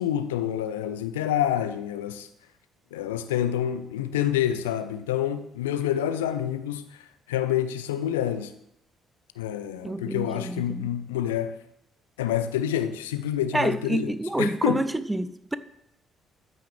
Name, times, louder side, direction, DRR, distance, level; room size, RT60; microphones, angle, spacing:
voice 1, 0.0-2.3 2.9-6.8 7.3-8.5 9.4-11.5 12.2-14.1 14.4-14.8, left 10 dB, 75° left, 0.4 m, -27 dB
voice 2, 9.8-10.9 13.5-15.6, right 1 dB, 10° right, 0.6 m, -28 dB
13.0 x 5.8 x 3.4 m
figure-of-eight pair, 45°, 0 cm